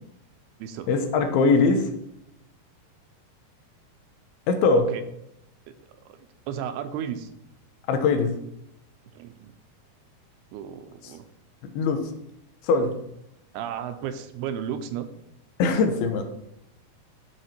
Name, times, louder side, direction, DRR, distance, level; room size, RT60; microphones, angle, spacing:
voice 1, 0.9-1.9 4.5-4.9 7.9-8.3 11.6-12.1 12.7-12.9 15.6-16.2, left 4 dB, 80° left, 7 dB, 2.7 m, -21 dB
voice 2, 6.1-7.3 9.1-9.5 10.5-11.2 13.5-15.1, right 9 dB, 85° right, 9 dB, 2.7 m, -34 dB
11.5 x 4.8 x 4.4 m, 0.80 s
omnidirectional pair, 4.6 m